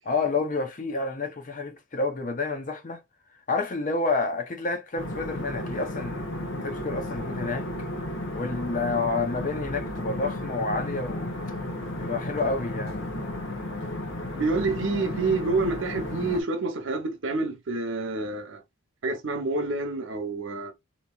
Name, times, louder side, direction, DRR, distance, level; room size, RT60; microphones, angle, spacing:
voice 1, 0.1-3.0 3.5-6.3 6.6-7.9 8.3-11.3 12.0-13.1, left 3 dB, 40° left, 0.6 m, -29 dB
sound 1, 5.0-16.4, left 1 dB, 75° left, 0.9 m, -33 dB
voice 2, 14.3-18.6 19.0-20.7, right 3 dB, 70° right, 0.7 m, -28 dB
2.8 x 2.8 x 2.3 m
head